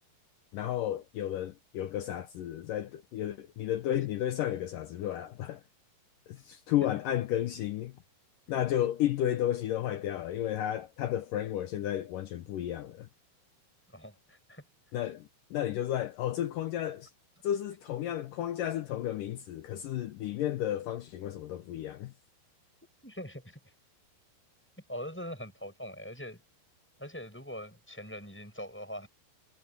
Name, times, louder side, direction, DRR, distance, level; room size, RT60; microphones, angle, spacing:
voice 1, 0.5-5.6 6.3-7.9 8.5-13.1 14.9-17.1 17.4-22.1, left 12 dB, 85° left, 1.9 m, -32 dB
voice 2, 13.9-14.7 23.0-23.7 24.9-26.4 27.0-29.1, equal, 5° left, 5.5 m, -42 dB
omnidirectional pair, 5.0 m